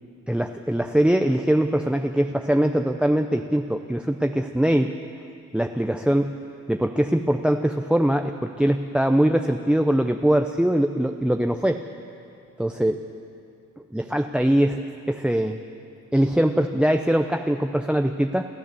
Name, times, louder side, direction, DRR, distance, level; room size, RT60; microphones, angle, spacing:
voice 1, 0.3-4.9 5.5-6.4 6.7-11.8 12.6-13.0 13.9-15.6 16.1-18.5, right 1 dB, 5° right, 6 dB, 0.7 m, -22 dB
28.5 x 13.5 x 7.0 m, 2.6 s
cardioid pair, 90°, 30 cm